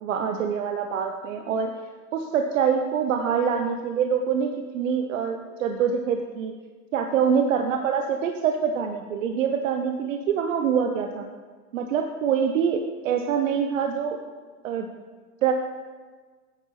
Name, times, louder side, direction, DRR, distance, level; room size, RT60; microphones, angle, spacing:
voice 1, 0.0-1.7 2.1-6.5 6.9-11.3 11.7-14.2 14.6-14.9 15.4-15.5, right 7 dB, 55° right, 5 dB, 0.8 m, -25 dB
9.5 x 8.1 x 4.8 m, 1.4 s
supercardioid pair, 165°, 46 cm